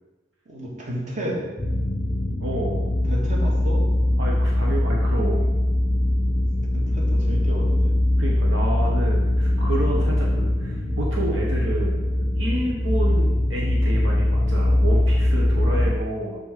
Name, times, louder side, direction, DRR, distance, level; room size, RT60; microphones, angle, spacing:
voice 1, 0.5-1.4 3.1-3.8 6.7-8.0 13.0-13.2, equal, 40° right, -3 dB, 1.9 m, -32 dB
sound 1, 1.6-16.0, left 1 dB, 20° left, 1.0 m, -21 dB
voice 2, 2.4-2.8 4.2-5.5 8.2-12.0 12.3-16.4, right 1 dB, 70° right, -2 dB, 1.2 m, -29 dB
6.9 x 4.3 x 6.6 m, 1.2 s
head